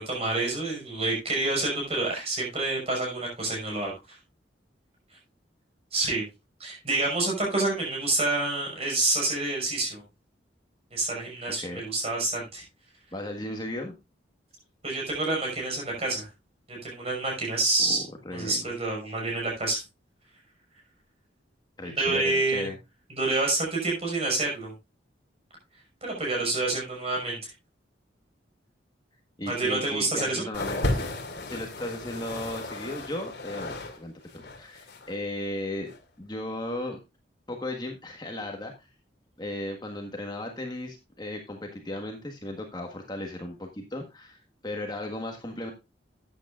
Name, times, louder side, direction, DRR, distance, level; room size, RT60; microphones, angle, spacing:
voice 1, 0.0-3.9 5.9-6.3 6.6-10.0 10.9-12.6 14.8-16.3 16.7-18.0 18.3-19.8 21.8-22.7 23.2-24.7 26.0-27.4 29.5-30.4, right 2 dB, 35° right, -1 dB, 6.0 m, -28 dB
voice 2, 13.1-13.9 17.8-18.7 21.8-22.8 29.4-31.1 31.5-35.9 36.2-37.0 37.5-38.9 39.4-45.7, left 1 dB, 25° left, 3 dB, 1.5 m, -36 dB
sound 1, 30.5-34.0 34.2-35.1 35.9-36.0, left 2 dB, 65° left, 2.4 m, -33 dB
13.0 x 9.1 x 2.4 m, 0.23 s
head